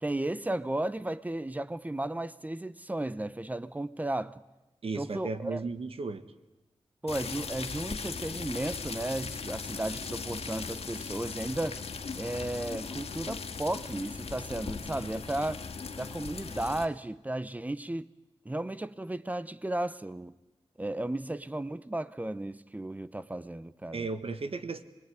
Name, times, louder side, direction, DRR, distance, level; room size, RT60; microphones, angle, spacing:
voice 1, 0.0-4.4 5.0-5.6 7.0-11.8 12.2-15.6 16.0-18.1 18.4-20.3 20.8-24.1, right 1 dB, 15° right, 0.9 m, -34 dB
voice 2, 4.8-6.2 23.9-24.8, right 4 dB, 65° right, 1.6 m, -35 dB
sound 1, 7.1-16.9, left 5 dB, 75° left, 2.0 m, -38 dB
26.5 x 21.0 x 9.6 m
wide cardioid pair, 90°, 10 cm